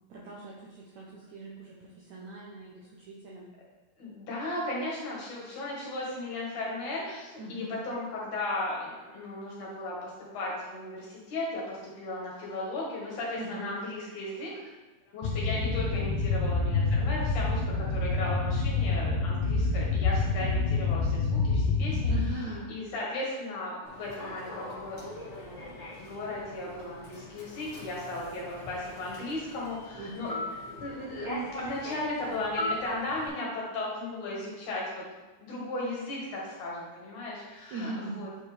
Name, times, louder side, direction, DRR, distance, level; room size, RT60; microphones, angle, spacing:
voice 1, 0.1-3.5 7.4-7.8 13.4-13.7 22.1-22.7 29.9-30.4 37.7-38.2, right 2 dB, 75° right, -4 dB, 1.7 m, -40 dB
voice 2, 4.0-14.5 15.1-25.1 25.4-30.3 30.7-35.0 35.4-38.3, left 2 dB, 60° left, -5 dB, 2.7 m, -36 dB
sound 1, 15.2-22.3, left 3 dB, 80° left, 2.7 m, -27 dB
Human voice / Subway metro underground, 23.8-33.3, left 1 dB, 45° left, 0.8 m, -40 dB
8.6 x 4.6 x 3.3 m, 1.2 s
omnidirectional pair, 4.2 m